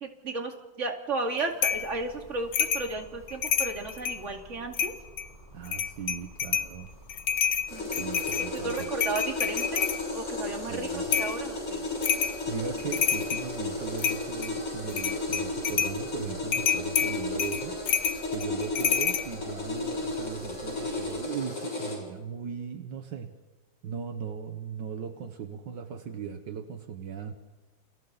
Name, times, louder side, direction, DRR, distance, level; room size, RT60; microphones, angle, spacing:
voice 1, 0.0-4.9 7.7-8.0 8.5-11.9, right 3 dB, 40° right, 3 dB, 2.7 m, -34 dB
sound 1, 1.6-1.9 2.5-2.9 3.3-4.2 4.7-5.3 5.7-6.7 7.1-10.0 11.1-11.4 12.0-12.4 12.8-13.5 14.0-14.5 14.9-16.0 16.5-19.3, left 8 dB, 65° left, 1.6 m, -28 dB
sound 2, 1.6-21.2, right 1 dB, 25° left, 8.2 m, -51 dB
voice 2, 5.5-6.9 7.8-8.9 10.7-11.0 12.5-17.8 18.3-23.3 23.8-27.3, right 7 dB, 75° right, 6 dB, 1.8 m, -38 dB
sound 3, 7.7-22.0, left 2 dB, 80° left, 7.2 m, -34 dB
30.0 x 26.0 x 4.1 m, 1.2 s
omnidirectional pair, 2.0 m